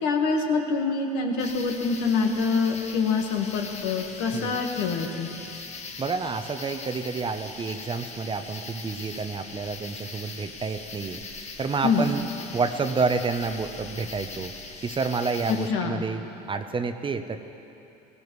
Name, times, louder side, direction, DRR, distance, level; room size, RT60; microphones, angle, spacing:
voice 1, 0.0-5.3 11.8-12.1 15.5-16.1, left 4 dB, 75° left, 2 dB, 1.6 m, -25 dB
sound 1, 1.4-15.7, left 4 dB, 35° left, 1.3 m, -41 dB
voice 2, 6.0-11.2 11.6-12.2 12.5-14.5 14.8-17.4, right 4 dB, 25° right, 8 dB, 0.7 m, -29 dB
17.0 x 16.5 x 3.2 m, 2.9 s
supercardioid pair, 90°, 20 cm